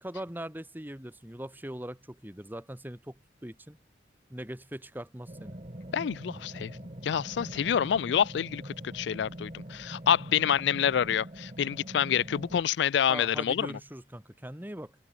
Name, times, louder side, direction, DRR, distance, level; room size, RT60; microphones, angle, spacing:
voice 1, 0.0-3.8 4.3-5.6 13.1-14.9, right 1 dB, 10° right, 1.5 m, -41 dB
sound 1, 5.3-12.6, right 1 dB, 35° right, 1.7 m, -43 dB
voice 2, 5.9-6.8 7.0-13.8, left 8 dB, 70° left, 0.3 m, -27 dB
head